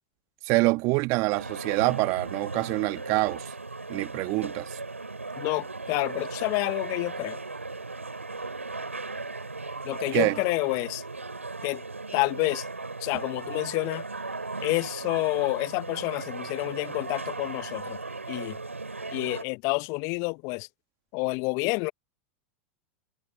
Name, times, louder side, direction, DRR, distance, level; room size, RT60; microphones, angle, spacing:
voice 1, 0.5-3.4 3.9-4.7 10.1-10.3, right 25 dB, 45° right, 1.7 m, -25 dB
sound 1, 1.3-19.4, right 3 dB, 90° right, 6.7 m, -37 dB
voice 2, 5.4-7.4 9.8-11.0 11.6-11.8 12.1-12.6 13.0-14.0 14.6-18.0 18.3-18.6 19.1-20.7 21.1-21.9, left 30 dB, 50° left, 1.1 m, -28 dB
figure-of-eight pair, 90°, 7 cm